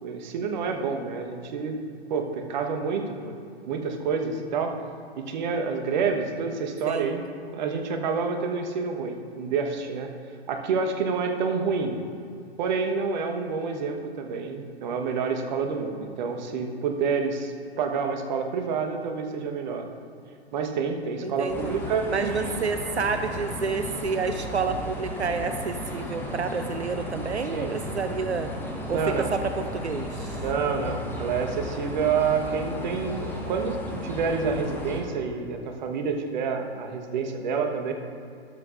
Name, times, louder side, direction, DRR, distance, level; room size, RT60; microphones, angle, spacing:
voice 1, 0.0-3.4 3.7-4.8 5.2-7.2 7.5-10.1 10.5-12.0 12.6-19.9 20.5-22.5 27.5-27.7 28.9-29.3 30.4-37.9, right 5 dB, 45° right, 4 dB, 1.2 m, -28 dB
voice 2, 21.2-21.7 22.1-28.5 28.9-30.4, right 5 dB, 85° right, 8 dB, 0.7 m, -29 dB
sound 1, 21.5-35.0, left 1 dB, 5° left, 1.1 m, -34 dB
13.5 x 12.0 x 2.5 m, 2.4 s
figure-of-eight pair, 120°, 32 cm